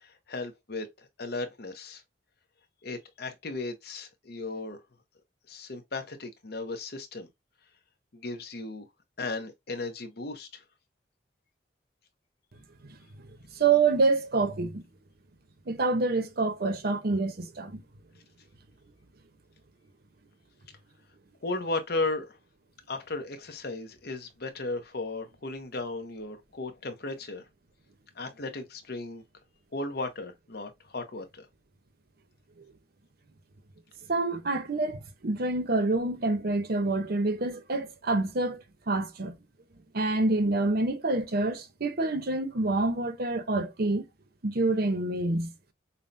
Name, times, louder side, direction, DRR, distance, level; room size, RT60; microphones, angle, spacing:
voice 1, 0.3-0.9 1.2-2.0 2.8-4.8 5.5-7.3 8.1-8.9 9.2-10.5 21.4-22.3 22.9-27.4 28.2-29.2 29.7-31.5, left 2 dB, 55° left, 0.8 m, -35 dB
voice 2, 13.6-14.8 15.7-17.8 34.1-39.3 39.9-44.0 44.4-45.5, right 3 dB, 55° right, 0.7 m, -27 dB
5.5 x 2.2 x 2.6 m
head